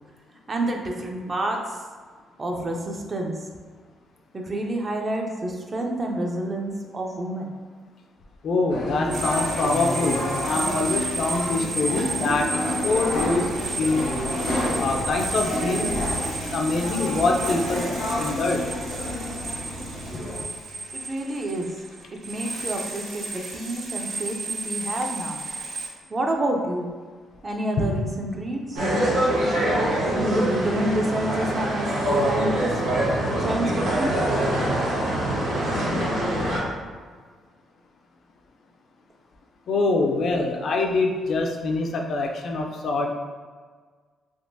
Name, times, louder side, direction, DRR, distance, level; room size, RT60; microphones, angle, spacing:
voice 1, 0.5-1.6 2.4-3.4 4.3-7.5 20.9-21.7 22.1-25.4 26.1-26.9 27.4-28.8 30.1-31.9 32.2-32.7 33.4-34.1, right 1 dB, 30° right, 2 dB, 0.5 m, -28 dB
voice 2, 8.4-13.5 13.8-14.1 14.8-16.0 16.5-17.9 18.2-18.7 27.8-28.0 39.7-43.1, left 3 dB, 60° left, 2 dB, 0.4 m, -24 dB
sound 1, 8.7-20.4, left 1 dB, 85° left, 0.9 m, -29 dB
sound 2, 9.1-25.9, right 3 dB, 65° right, 0.8 m, -33 dB
sound 3, 28.8-36.6, right 1 dB, 80° right, 1.1 m, -24 dB
3.5 x 2.5 x 2.6 m, 1.6 s
cardioid pair, 90°, 0 cm